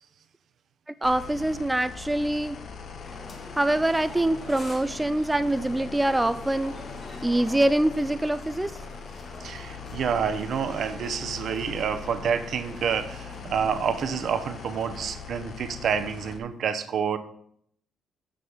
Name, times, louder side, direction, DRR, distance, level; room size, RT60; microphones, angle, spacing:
sound 1, 1.0-16.4, left 5 dB, 60° left, 1.1 m, -41 dB
voice 1, 1.0-2.6 3.6-6.8 7.2-8.8, right 1 dB, 10° right, 11 dB, 0.4 m, -24 dB
sound 2, 3.0-15.1, left 2 dB, 35° left, 3.4 m, -46 dB
voice 2, 9.4-17.2, right 7 dB, 65° right, 10 dB, 0.8 m, -28 dB
6.7 x 6.3 x 5.5 m, 0.67 s
cardioid pair, 90°, 0 cm